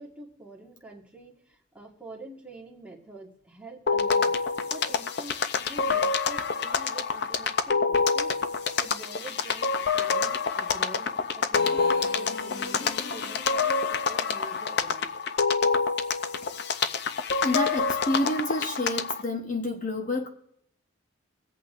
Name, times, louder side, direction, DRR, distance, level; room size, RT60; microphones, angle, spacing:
voice 1, 0.0-8.4 8.8-15.1, right 2 dB, 5° right, -2 dB, 1.6 m, -46 dB
sound 1, 3.9-19.2, left 5 dB, 55° left, 0.5 m, -27 dB
voice 2, 17.4-20.3, left 1 dB, 40° left, 2 dB, 1.0 m, -29 dB
23.5 x 8.2 x 2.5 m, 0.72 s
head